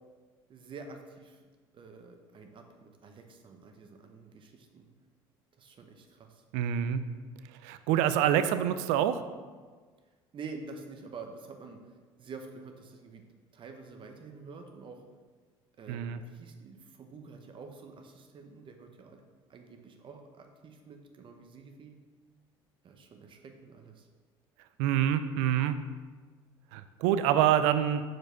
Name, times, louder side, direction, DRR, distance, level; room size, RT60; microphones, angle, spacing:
voice 1, 0.5-1.4 1.7-4.9 5.6-6.4 10.3-13.2 13.5-15.0 15.8-19.2 19.5-22.0 22.8-24.1, right 4 dB, 45° right, 4 dB, 0.8 m, -48 dB
voice 2, 6.5-7.0 7.6-9.2 15.9-16.2 24.8-25.8 26.7-28.0, right 10 dB, 75° right, 11 dB, 0.4 m, -26 dB
4.8 x 4.6 x 4.5 m, 1.5 s
supercardioid pair, 75°, 12 cm